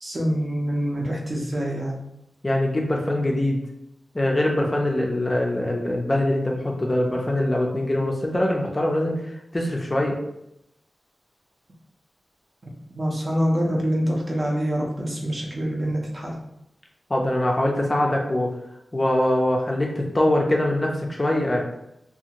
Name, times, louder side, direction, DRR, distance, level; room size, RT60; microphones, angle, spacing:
voice 1, 0.0-1.9 13.0-16.4, equal, 35° right, -2 dB, 0.6 m, -25 dB
voice 2, 2.4-3.6 4.1-10.2 17.1-18.5 18.9-21.6, left 1 dB, 25° left, -1 dB, 0.4 m, -23 dB
2.6 x 2.4 x 2.9 m, 0.81 s
wide cardioid pair, 125°, 0 cm